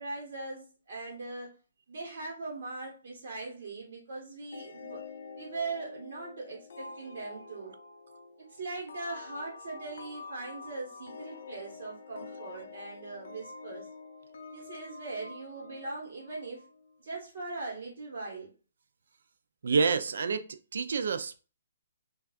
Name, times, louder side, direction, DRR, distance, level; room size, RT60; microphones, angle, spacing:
voice 1, 0.0-1.5 1.9-5.0 5.4-7.7 8.6-13.9 14.5-16.6 17.0-18.5, right 3 dB, 40° right, 1.1 m, -40 dB
sound 1, 4.5-16.9, left 4 dB, 50° left, 0.6 m, -47 dB
voice 2, 19.6-21.4, right 5 dB, 55° right, 0.4 m, -28 dB
5.8 x 2.3 x 2.4 m
hypercardioid pair, 180°, 0 cm